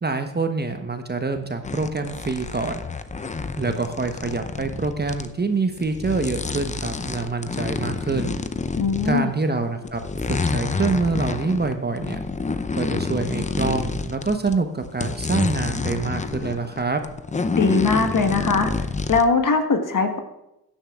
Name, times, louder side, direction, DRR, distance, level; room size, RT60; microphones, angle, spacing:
voice 1, 0.0-2.8 3.6-8.3 9.0-10.0 10.4-12.2 12.7-17.0, right 4 dB, 20° right, 6 dB, 1.1 m, -26 dB
sound 1, 1.6-5.3 5.8-9.4 9.8-14.6 14.8-19.2, left 4 dB, 15° left, 0.6 m, -28 dB
voice 2, 8.8-9.3 17.6-18.7 19.1-20.2, left 4 dB, 40° left, 6 dB, 1.5 m, -20 dB
16.5 x 10.0 x 2.4 m, 0.89 s
hypercardioid pair, 45°, 48 cm